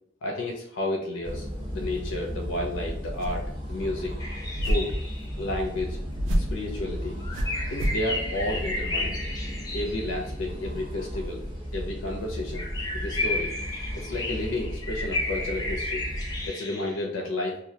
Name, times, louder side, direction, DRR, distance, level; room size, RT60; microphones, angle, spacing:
voice 1, 0.2-4.2 4.6-5.0 5.4-6.0 6.3-7.2 7.7-9.2 9.7-11.4 11.7-12.7 12.9-13.5 14.0-16.0 16.5-17.6, left 1 dB, 85° left, -1 dB, 0.4 m, -31 dB
sound 1, 1.2-16.5, equal, 25° right, 0.6 m, -35 dB
sound 2, 3.0-3.6 4.6-5.0 6.2-6.6 7.3-8.1, equal, 90° right, 0.5 m, -28 dB
sound 3, 4.2-5.5 7.2-10.2 12.5-17.0, left 2 dB, 20° left, 0.4 m, -33 dB
2.2 x 2.0 x 2.7 m, 0.73 s
head